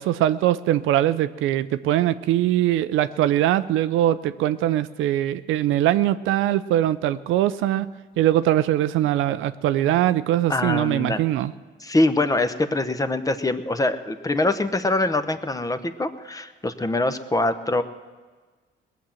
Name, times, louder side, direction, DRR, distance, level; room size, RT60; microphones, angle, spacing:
voice 1, 0.0-7.9 8.2-11.5, right 13 dB, 90° right, 13 dB, 0.5 m, -22 dB
voice 2, 10.5-11.2 11.8-17.8, left 2 dB, 15° left, 10 dB, 0.9 m, -24 dB
19.5 x 7.2 x 7.6 m, 1.4 s
cardioid pair, 90°, 20 cm